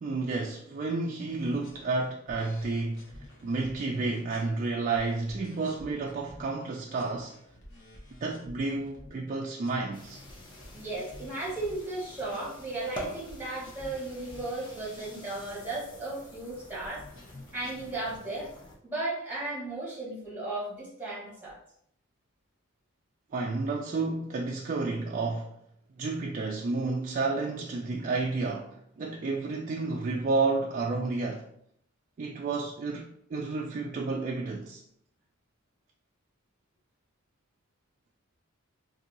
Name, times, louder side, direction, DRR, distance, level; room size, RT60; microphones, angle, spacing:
voice 1, 0.0-7.4 8.2-10.2 23.3-25.5 26.0-31.5 32.2-34.8, right 3 dB, 35° right, 0.3 m, -31 dB
sound 1, 1.3-6.6 6.9-9.3 9.6-12.0 12.3-12.6 12.9-18.2, left 1 dB, 55° left, 0.9 m, -51 dB
sound 2, 9.9-18.8, equal, 20° left, 0.6 m, -47 dB
voice 2, 10.7-17.0 17.5-18.5 18.8-21.6, right 2 dB, 10° right, 1.2 m, -35 dB
2.6 x 2.6 x 3.9 m
head